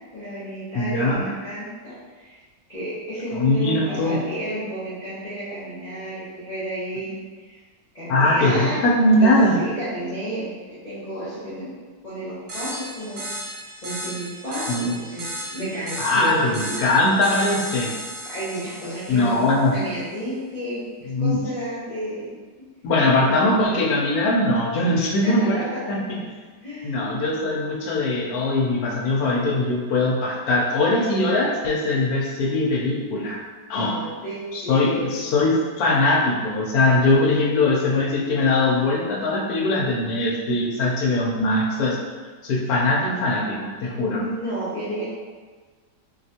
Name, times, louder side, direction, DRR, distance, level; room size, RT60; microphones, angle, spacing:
voice 1, 0.1-2.4 2.7-7.6 7.9-8.8 9.2-11.7 12.0-13.2 13.8-17.0 18.2-22.3 23.1-23.5 23.7-23.9 25.2-26.0 26.6-27.5 33.7-35.5 43.2-45.0, right 1 dB, 30° left, -13 dB, 1.1 m, -32 dB
voice 2, 0.7-1.2 3.3-4.2 8.1-9.6 14.7-14.9 16.0-17.9 19.1-19.8 21.1-21.4 22.8-25.6 25.9-26.2 26.8-33.4 33.7-34.0 34.5-42.0 42.4-44.2, left 2 dB, 70° left, -2 dB, 1.0 m, -21 dB
sound 1, 12.5-19.6, equal, 65° right, 1.2 m, -35 dB
3.1 x 2.9 x 2.8 m, 1.4 s
omnidirectional pair, 1.9 m